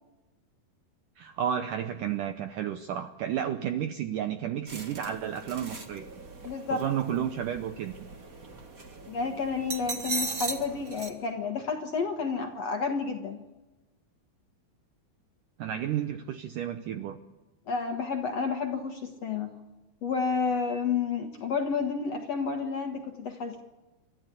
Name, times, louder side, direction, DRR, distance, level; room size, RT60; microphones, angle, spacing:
voice 1, 1.2-6.1 6.7-8.0 15.6-17.2, right 9 dB, 80° right, 8 dB, 1.9 m, -32 dB
sound 1, 4.7-11.1, right 3 dB, 35° right, 1.3 m, -39 dB
voice 2, 6.4-6.8 9.1-13.4 17.7-19.6 20.0-23.6, left 5 dB, 60° left, 3 dB, 1.9 m, -30 dB
28.5 x 13.0 x 8.3 m, 1.1 s
omnidirectional pair, 4.7 m